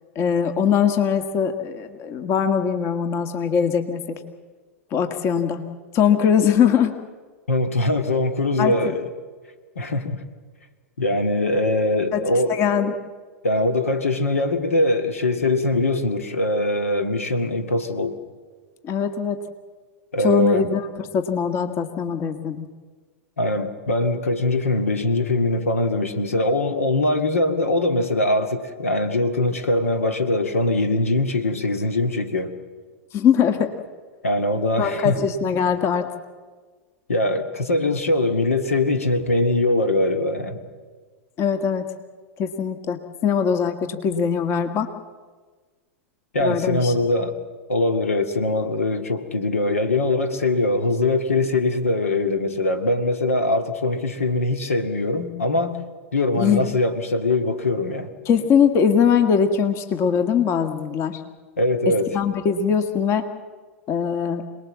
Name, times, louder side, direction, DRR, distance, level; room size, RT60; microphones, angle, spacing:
voice 1, 0.2-4.2 4.9-5.6 5.9-6.9 8.6-8.7 12.1-12.9 18.8-19.4 20.2-22.7 33.1-33.7 34.8-36.1 41.4-41.9 42.4-44.9 46.4-46.9 56.4-56.7 58.3-61.2 62.1-63.3 63.9-64.4, left 7 dB, 35° left, 8 dB, 1.7 m, -21 dB
voice 2, 7.5-9.0 9.8-10.2 11.0-12.6 13.4-18.2 20.1-20.7 21.6-21.8 23.4-32.5 34.2-35.2 37.1-40.6 46.3-47.4 47.7-55.8 56.1-58.1 61.6-62.2, left 2 dB, 80° left, 7 dB, 2.2 m, -22 dB
27.5 x 20.0 x 7.5 m, 1.4 s
figure-of-eight pair, 95°, 7 cm